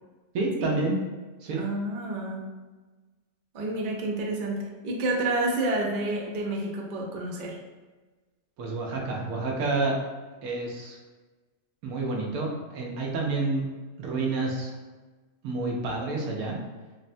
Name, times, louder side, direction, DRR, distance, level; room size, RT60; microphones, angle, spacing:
voice 1, 0.3-1.0 1.4-1.6 8.6-10.0 10.4-11.0 11.8-13.7 14.0-14.8 15.4-16.6, right 3 dB, 90° right, -1 dB, 1.1 m, -29 dB
voice 2, 1.5-2.5 3.5-7.6, right 2 dB, 65° right, -1 dB, 0.5 m, -29 dB
3.4 x 2.0 x 2.5 m, 1.3 s
omnidirectional pair, 1.4 m